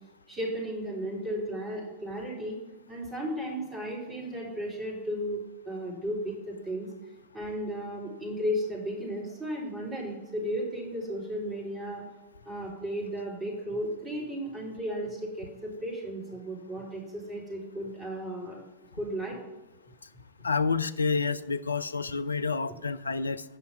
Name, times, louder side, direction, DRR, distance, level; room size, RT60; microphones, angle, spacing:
voice 1, 0.3-2.6 2.9-5.4 5.7-6.9 7.3-12.0 12.4-18.6 18.9-19.3, equal, 15° right, -4 dB, 3.5 m, -34 dB
voice 2, 20.4-23.4, left 4 dB, 75° left, 13 dB, 0.3 m, -29 dB
8.4 x 5.7 x 5.7 m, 1.0 s
figure-of-eight pair, 90°, 0 cm